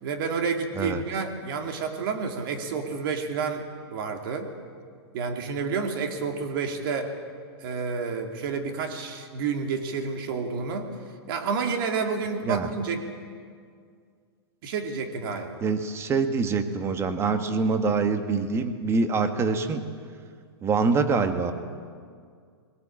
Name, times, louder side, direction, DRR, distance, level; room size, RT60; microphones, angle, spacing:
voice 1, 0.0-4.5 5.1-7.1 7.6-10.9 11.3-13.0 14.6-15.6, right 5 dB, 55° right, 4 dB, 2.9 m, -29 dB
voice 2, 15.6-19.8 20.6-21.5, right 4 dB, 20° right, 8 dB, 1.5 m, -25 dB
22.0 x 17.5 x 8.8 m, 2.1 s
hypercardioid pair, 135°, 14 cm